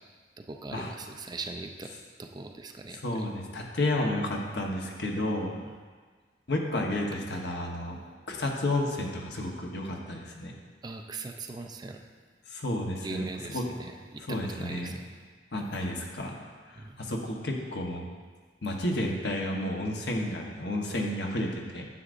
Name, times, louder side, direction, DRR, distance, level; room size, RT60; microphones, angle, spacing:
voice 1, 0.4-1.9 2.2-3.3 5.5-5.7 10.8-12.0 13.0-15.0 16.8-17.0, right 3 dB, 25° right, 4 dB, 0.4 m, -40 dB
voice 2, 3.0-5.5 6.5-8.0 8.3-10.5 12.5-13.2 13.5-13.6 14.3-15.0 15.5-16.4 16.7-18.1 18.6-21.9, left 1 dB, 70° left, 0 dB, 1.0 m, -31 dB
9.6 x 7.5 x 2.6 m, 1.5 s
head